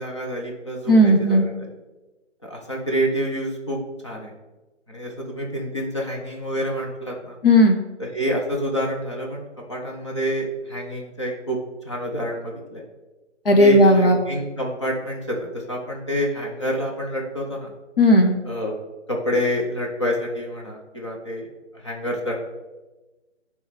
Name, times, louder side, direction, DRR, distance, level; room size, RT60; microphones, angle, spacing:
voice 1, 0.0-1.7 2.4-4.3 4.9-7.4 8.0-11.6 11.8-12.8 13.6-17.7 18.4-18.7 19.1-21.5 21.8-22.5, equal, 25° left, -1 dB, 0.7 m, -27 dB
voice 2, 0.9-1.5 7.4-7.8 13.4-14.2 18.0-18.4, left 1 dB, 50° left, 3 dB, 1.0 m, -14 dB
8.9 x 3.1 x 5.1 m, 1.1 s
hypercardioid pair, 175°, 37 cm